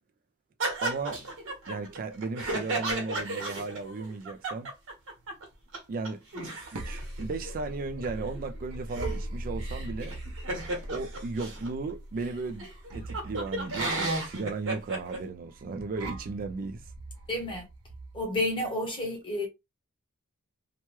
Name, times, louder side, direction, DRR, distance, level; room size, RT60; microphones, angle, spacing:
sound 1, 0.6-5.4 5.7-5.8 6.0-11.7 12.2-12.3 12.6-15.2, right 2 dB, 65° right, 1.2 m, -34 dB
voice 1, 0.8-1.2 1.7-4.7 5.9-6.2 6.7-10.1 10.9-16.9, right 3 dB, 40° right, 0.3 m, -35 dB
sound 2, 6.3-18.2, right 1 dB, 80° right, 0.7 m, -40 dB
voice 2, 17.3-17.7 18.1-19.5, left 1 dB, 25° left, 1.0 m, -30 dB
2.9 x 2.2 x 3.0 m
head